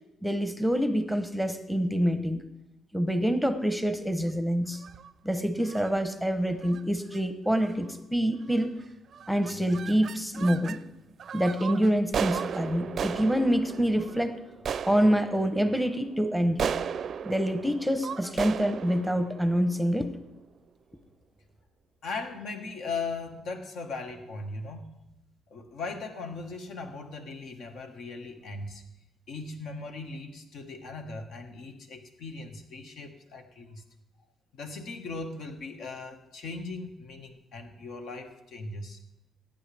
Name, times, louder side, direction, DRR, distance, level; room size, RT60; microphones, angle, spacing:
voice 1, 0.2-2.4 2.9-4.8 5.2-8.7 9.3-10.8 11.3-14.4 14.9-16.8 17.2-20.1, equal, ahead, 9 dB, 0.9 m, -26 dB
sound 1, 4.7-5.1 5.7-5.9 6.6-6.8 7.1-7.2 7.5-7.9 8.5-8.8 9.1-10.8 11.2-20.4, right 7 dB, 55° right, 0.4 m, -36 dB
voice 2, 22.0-24.9 25.5-28.8 29.3-33.8 34.5-39.0, left 3 dB, 75° left, 5 dB, 1.5 m, -38 dB
17.0 x 9.0 x 3.4 m, 0.94 s
cardioid pair, 90°, 0 cm